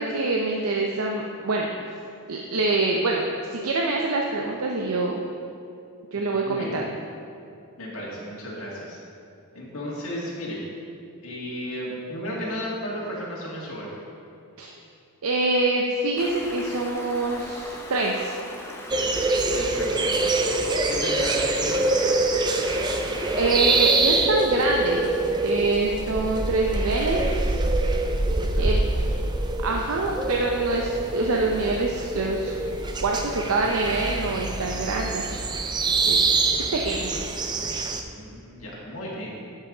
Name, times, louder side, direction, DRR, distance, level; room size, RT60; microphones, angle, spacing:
voice 1, 0.0-1.7 2.3-3.2 3.5-5.2 6.1-6.9 14.6-14.7 15.2-18.3 23.4-25.1 25.4-27.6 28.6-28.8 29.6-32.6 33.0-35.2 36.1-37.1, right 2 dB, 75° right, 0 dB, 0.6 m, -25 dB
voice 2, 6.1-6.9 7.8-9.0 9.5-10.6 11.2-14.0 19.5-20.4 20.9-21.8 28.2-28.9 37.9-39.4, equal, 65° left, -6 dB, 2.1 m, -34 dB
Stream, 16.2-23.9, left 1 dB, 10° left, 0.7 m, -40 dB
sound 1, 18.9-38.0, right 2 dB, 20° right, 0.4 m, -25 dB
12.0 x 5.6 x 3.9 m, 2.6 s
head